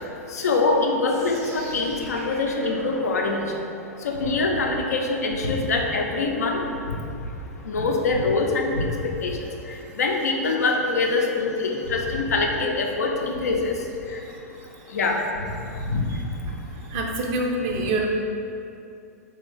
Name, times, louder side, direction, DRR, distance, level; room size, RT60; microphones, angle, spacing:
voice 1, 0.3-3.4 4.0-6.6 7.6-9.4 10.0-13.8 14.1-14.2 14.9-15.2 15.9-16.0, left 3 dB, 70° left, 1 dB, 0.5 m, -24 dB
sound 1, 1.1-7.1, equal, 90° right, 1.4 m, -45 dB
voice 2, 16.9-18.1, right 2 dB, 45° right, 1 dB, 0.5 m, -26 dB
3.6 x 2.8 x 3.2 m, 2.6 s
figure-of-eight pair, 100°, 9 cm